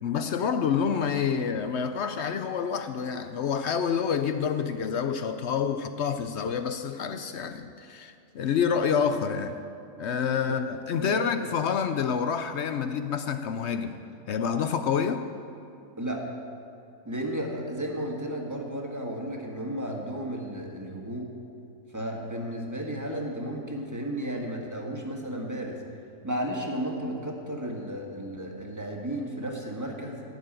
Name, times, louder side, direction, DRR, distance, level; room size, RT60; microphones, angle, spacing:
voice 1, 0.0-9.6 10.0-14.0 14.3-15.3, left 7 dB, 60° left, 9 dB, 0.8 m, -28 dB
voice 2, 10.4-11.5 16.0-16.3 17.0-21.3 21.9-25.8 26.2-30.2, right 1 dB, 10° right, 0 dB, 1.6 m, -33 dB
15.0 x 6.8 x 8.9 m, 2.5 s
omnidirectional pair, 1.5 m